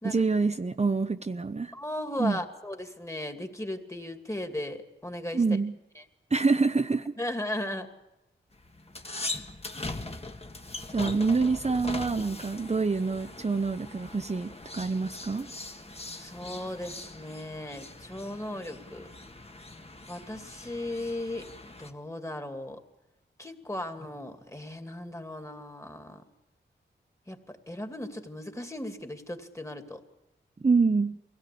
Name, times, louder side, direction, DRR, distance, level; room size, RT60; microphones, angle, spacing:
voice 1, 0.0-1.7 2.2-2.4 5.3-5.7 6.3-7.1 10.9-15.5 30.6-31.2, right 4 dB, 35° right, 8 dB, 0.8 m, -26 dB
voice 2, 1.7-5.4 6.0-6.1 7.2-7.9 9.1-9.4 16.1-19.1 20.1-22.8 23.4-26.2 27.3-30.0, left 1 dB, 15° left, 6 dB, 2.5 m, -37 dB
sound 1, 8.5-21.9, left 2 dB, 30° left, 1.7 m, -41 dB
23.0 x 17.0 x 8.5 m, 0.96 s
cardioid pair, 50°, 20 cm